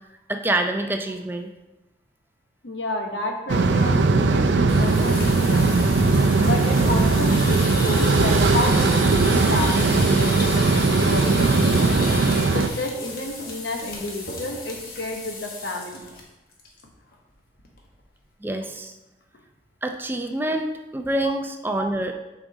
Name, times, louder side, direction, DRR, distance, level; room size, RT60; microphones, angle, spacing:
voice 1, 0.3-1.5 18.4-18.9 19.8-22.1, right 1 dB, 10° right, 5 dB, 0.4 m, -26 dB
voice 2, 2.6-5.7 6.4-12.0 12.5-16.1 21.2-21.3, left 1 dB, 80° left, 3 dB, 1.0 m, -31 dB
sound 1, 3.5-12.7, right 3 dB, 90° right, 0.5 m, -19 dB
sound 2, 4.6-16.2 16.5-16.8 17.1-17.2 17.6-18.0, left 2 dB, 55° left, 1.4 m, -33 dB
7.3 x 4.8 x 4.0 m, 1.0 s
head